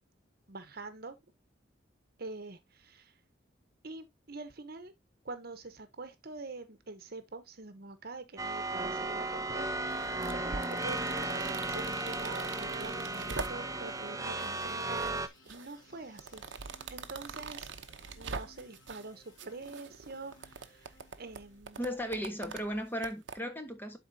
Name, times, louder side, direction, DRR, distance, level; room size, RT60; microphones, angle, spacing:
voice 1, 0.5-1.2 2.2-3.1 3.8-4.9 5.2-16.4 16.9-17.7 18.1-21.8, right 3 dB, 55° right, 1.1 m, -46 dB
sound 1, 8.4-15.3, right 2 dB, 20° right, 0.7 m, -35 dB
sound 2, 9.1-21.6, left 2 dB, 90° left, 1.6 m, -60 dB
sound 3, 9.9-13.9 14.4-15.1 15.5-19.1 19.4-23.4, right 4 dB, 70° right, 0.8 m, -44 dB
voice 2, 21.8-24.0, equal, 10° left, 1.3 m, -36 dB
11.5 x 4.3 x 2.7 m
head